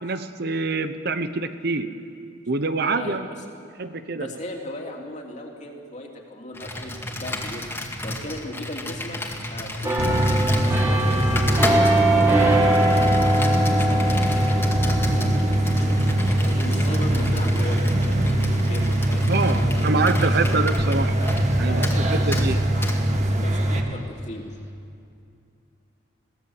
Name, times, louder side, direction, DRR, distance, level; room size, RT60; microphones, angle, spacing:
voice 1, 0.0-1.9 2.5-3.2 3.8-4.3 19.3-21.1 21.6-22.6, right 3 dB, 55° right, 10 dB, 0.9 m, -25 dB
voice 2, 2.9-3.4 4.1-7.7 8.0-9.2 9.5-13.3 13.7-16.0 16.4-19.9 20.2-20.5 21.6-22.4 22.7-24.4, left 1 dB, 40° left, 0 dB, 2.8 m, -37 dB
Computer keyboard, 6.5-21.5 21.8-22.0 22.3-22.5 22.8-23.0, left 1 dB, 10° left, 2.1 m, -32 dB
sound 1, 9.8-21.4 21.8-22.1, right 1 dB, 15° right, 3.1 m, -25 dB
sound 2, 10.0-23.8, right 1 dB, 40° right, 1.9 m, -22 dB
22.5 x 16.5 x 7.9 m, 2.5 s
head